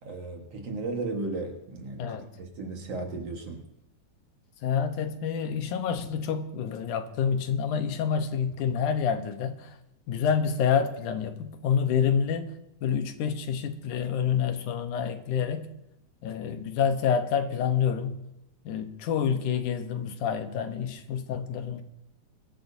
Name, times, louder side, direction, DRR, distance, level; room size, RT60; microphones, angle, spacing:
voice 1, 0.0-3.7, right 3 dB, 55° right, 2.5 m, -35 dB
voice 2, 2.0-2.3 4.6-9.8 10.1-12.6 12.8-15.7 16.2-18.1 18.7-21.8, left 7 dB, 85° left, 2.5 m, -28 dB
23.0 x 12.0 x 2.8 m
omnidirectional pair, 3.5 m